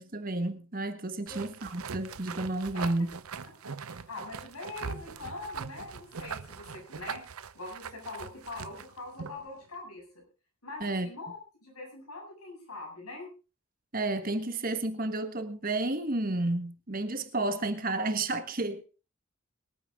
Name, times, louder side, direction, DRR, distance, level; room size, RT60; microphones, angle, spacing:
voice 1, 0.0-3.1 10.8-11.1 13.9-18.8, right 2 dB, 40° right, 1.4 m, -31 dB
sound 1, 1.3-9.5, right 6 dB, 80° right, 0.7 m, -41 dB
voice 2, 3.6-7.2 7.5-10.2 10.6-13.3, left 2 dB, 90° left, 7.6 m, -43 dB
22.5 x 9.2 x 3.6 m
head